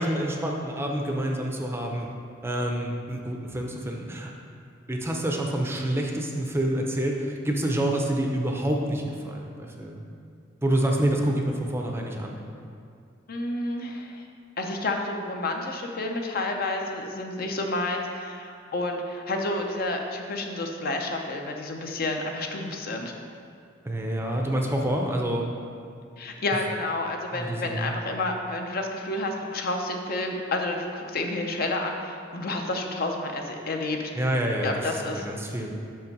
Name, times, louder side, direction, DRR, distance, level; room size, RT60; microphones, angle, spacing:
voice 1, 0.0-2.1 2.4-4.3 4.9-10.0 10.6-12.4 23.8-25.5 27.3-27.9 34.1-34.8 35.1-35.7, right 1 dB, 15° right, 1 dB, 0.5 m, -27 dB
voice 2, 13.3-14.2 14.6-23.1 26.2-34.1 34.6-35.2, left 2 dB, 50° left, 3 dB, 0.6 m, -30 dB
5.6 x 5.3 x 5.3 m, 2.4 s
head